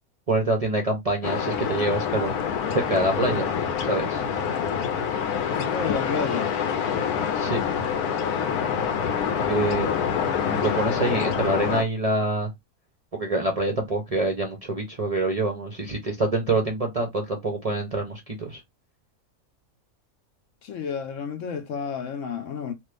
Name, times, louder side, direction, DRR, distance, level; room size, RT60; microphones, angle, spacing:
voice 1, 0.3-2.3 2.7-3.5 3.8-4.2 7.3-7.6 9.4-9.9 10.4-12.5 13.1-18.6, right 2 dB, 40° right, 0.5 m, -26 dB
sound 1, 1.2-11.8, left 7 dB, 85° left, 1.2 m, -26 dB
voice 2, 5.5-6.5 20.6-22.7, left 6 dB, 65° left, 0.9 m, -30 dB
3.1 x 2.5 x 3.3 m
omnidirectional pair, 1.6 m